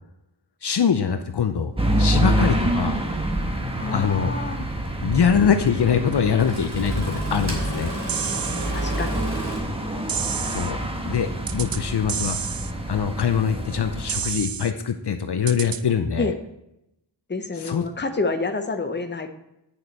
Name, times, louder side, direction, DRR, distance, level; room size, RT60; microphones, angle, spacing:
voice 1, 0.6-1.7 2.0-3.0 3.9-4.3 5.0-7.9 10.5-12.4 12.9-16.3 17.6-17.8, left 7 dB, 60° left, 8 dB, 0.6 m, -23 dB
sound 1, 1.8-14.3, right 1 dB, 10° right, 1.2 m, -27 dB
voice 2, 3.8-4.7 8.7-9.3 16.2-16.4 17.3-19.3, left 3 dB, 25° left, 7 dB, 0.8 m, -28 dB
Engine starting, 4.0-4.1 5.7-5.8 6.3-9.6, right 2 dB, 35° right, 2.9 m, -34 dB
sound 2, 8.1-8.7 10.1-10.7 11.5-11.8 12.1-12.7 14.1-14.7 15.5-15.8, right 8 dB, 50° right, 0.5 m, -29 dB
8.6 x 6.6 x 4.2 m, 0.86 s
wide cardioid pair, 75°, 46 cm